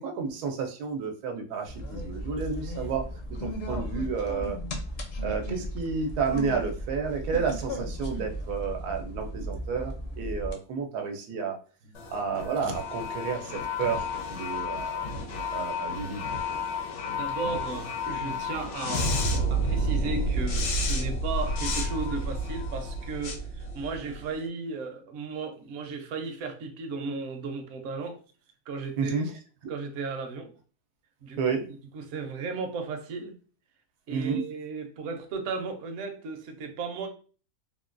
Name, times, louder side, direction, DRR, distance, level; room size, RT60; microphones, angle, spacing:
voice 1, 0.0-3.0 3.3-4.6 5.2-11.6 12.1-15.1 15.5-16.2 29.0-29.3 31.4-31.7 34.1-34.4, right 5 dB, 85° right, 1.1 m, -31 dB
sound 1, 1.7-10.5, equal, 60° left, 0.7 m, -35 dB
sound 2, 11.9-24.3, left 1 dB, 75° left, 1.2 m, -30 dB
voice 2, 17.1-19.2 19.5-28.2 28.7-29.3 29.7-30.5 31.2-31.4 31.9-33.4 34.1-37.1, right 4 dB, 60° right, 0.9 m, -35 dB
3.6 x 2.2 x 2.5 m
omnidirectional pair, 1.6 m